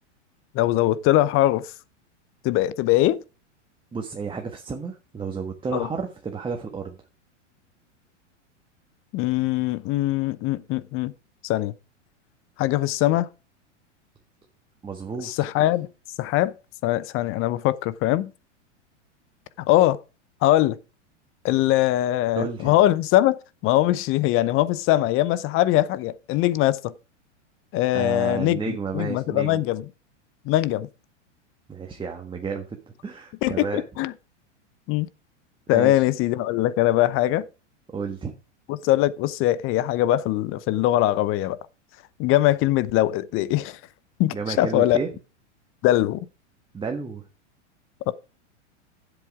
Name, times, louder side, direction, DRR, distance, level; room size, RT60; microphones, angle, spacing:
voice 1, 0.5-1.7 2.4-3.2 5.7-5.9 9.1-11.1 11.4-11.7 12.6-13.3 15.2-15.9 16.2-16.5 16.8-18.3 19.7-20.0 20.4-20.8 21.4-23.4 23.6-26.9 27.7-29.8 30.5-30.9 33.4-34.1 34.9-35.1 35.7-37.5 38.7-41.6 42.2-43.8 44.2-45.0 45.8-46.2 48.1-48.2, left 15 dB, 35° left, 0.7 m, -22 dB
voice 2, 3.9-7.0 14.8-15.3 22.3-22.8 27.9-29.6 31.7-33.8 35.7-36.0 37.9-38.3 44.3-45.1 46.7-47.3, right 5 dB, 15° right, 1.5 m, -31 dB
10.5 x 8.0 x 4.9 m
hypercardioid pair, 115°, 36 cm